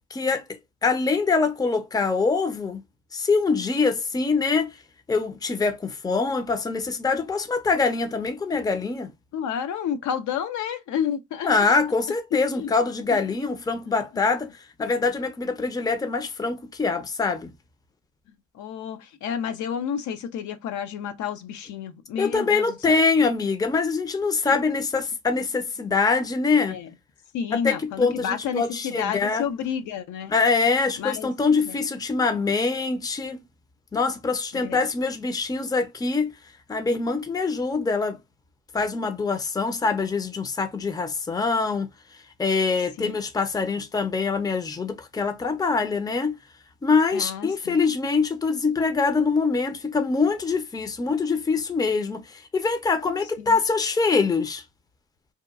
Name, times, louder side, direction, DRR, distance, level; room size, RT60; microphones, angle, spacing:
voice 1, 0.1-0.4 0.8-2.8 3.1-4.8 5.1-9.1 11.4-14.5 14.8-17.5 22.2-26.8 27.5-29.4 30.3-33.4 33.9-36.3 36.7-38.2 38.7-41.9 42.4-46.4 46.8-54.6, left 4 dB, 15° left, 0.5 m, -24 dB
voice 2, 9.3-11.5 12.3-12.7 13.1-13.2 18.5-23.0 24.4-24.6 26.7-26.9 27.3-30.3 31.0-31.3 31.7-31.8 34.5-34.8 43.0-43.1 47.1-47.8 53.4-53.6, left 8 dB, 75° left, 0.5 m, -30 dB
2.8 x 2.3 x 2.2 m
cardioid pair, 90°, 30 cm